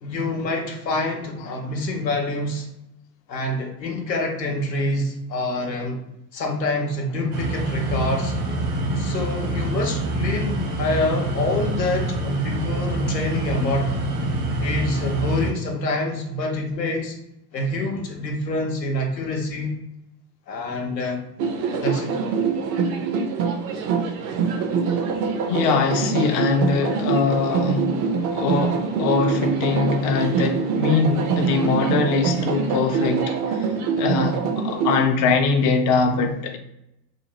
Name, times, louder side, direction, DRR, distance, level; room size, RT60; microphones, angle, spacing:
voice 1, 0.0-2.7 3.3-6.0 6.3-8.3 9.0-13.9 14.6-17.1 17.5-19.8 20.5-21.2 21.8-22.2, left 2 dB, 90° left, 0.7 m, -26 dB
sound 1, 7.3-15.5, right 1 dB, 70° right, 1.0 m, -26 dB
sound 2, 21.4-35.0, right 5 dB, 40° right, 0.5 m, -24 dB
voice 2, 25.5-28.0 28.3-36.6, left 5 dB, 40° left, 0.5 m, -22 dB
2.5 x 2.5 x 2.9 m
figure-of-eight pair, 75°, 49 cm